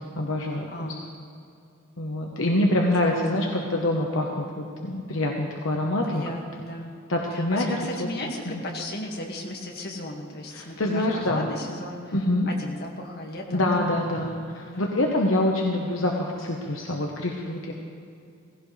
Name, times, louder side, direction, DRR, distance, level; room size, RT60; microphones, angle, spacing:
voice 1, 0.2-0.9 2.0-6.2 7.1-7.7 10.5-11.5 12.1-12.5 13.5-17.7, left 1 dB, 70° left, 0 dB, 1.1 m, -25 dB
voice 2, 0.7-1.1 2.8-3.2 6.0-6.9 7.3-12.2 12.5-14.1 14.7-14.9, left 1 dB, 50° left, 0 dB, 1.9 m, -36 dB
17.5 x 16.0 x 3.3 m, 2.5 s
head